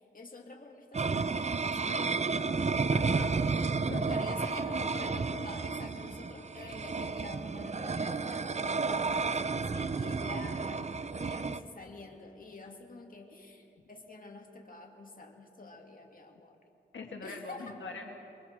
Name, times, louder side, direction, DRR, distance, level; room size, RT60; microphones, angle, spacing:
voice 1, 0.0-2.6 4.0-16.6 17.2-17.8, left 3 dB, 45° left, 2 dB, 2.6 m, -47 dB
sound 1, 0.9-11.6, right 4 dB, 35° right, 0.6 m, -32 dB
voice 2, 2.9-3.5 3.7-4.5 16.9-18.1, left 3 dB, 80° left, 1 dB, 1.7 m, -43 dB
27.5 x 23.0 x 4.8 m, 2.9 s
wide cardioid pair, 70°, 19 cm